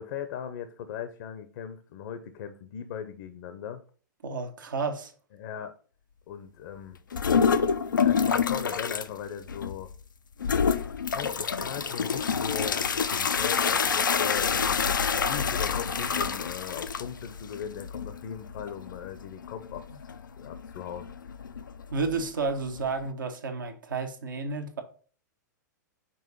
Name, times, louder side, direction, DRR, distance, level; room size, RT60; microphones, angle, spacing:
voice 1, 0.0-3.8 5.3-5.7 6.3-7.0 7.9-9.9 11.0-14.8 15.1-21.1, left 8 dB, 55° left, 0.7 m, -39 dB
voice 2, 4.2-5.1 21.9-24.8, right 4 dB, 80° right, 1.1 m, -31 dB
sound 1, 7.1-9.1 9.5-10.0 10.4-23.1, left 6 dB, 85° left, 0.5 m, -27 dB
5.5 x 3.6 x 5.4 m
hypercardioid pair, 110°, 10 cm